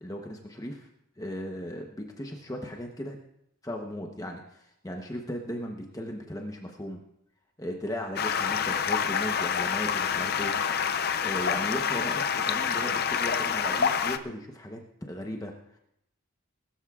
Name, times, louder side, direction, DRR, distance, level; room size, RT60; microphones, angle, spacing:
voice 1, 0.0-0.9 1.2-3.2 3.6-7.0 7.6-10.5 11.2-15.5, equal, 15° left, 2 dB, 0.9 m, -37 dB
Stream, 8.2-14.2, left 7 dB, 45° left, 0.5 m, -27 dB
20.5 x 13.0 x 2.4 m, 0.76 s
head